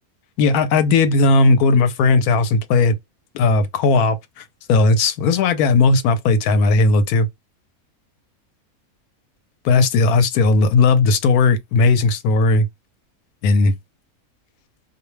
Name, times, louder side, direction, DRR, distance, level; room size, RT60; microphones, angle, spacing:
voice 1, 0.4-3.0 3.3-7.3 9.6-12.7 13.4-13.7, left 3 dB, 85° left, 1.1 m, -16 dB
2.5 x 2.1 x 3.0 m
omnidirectional pair, 1.5 m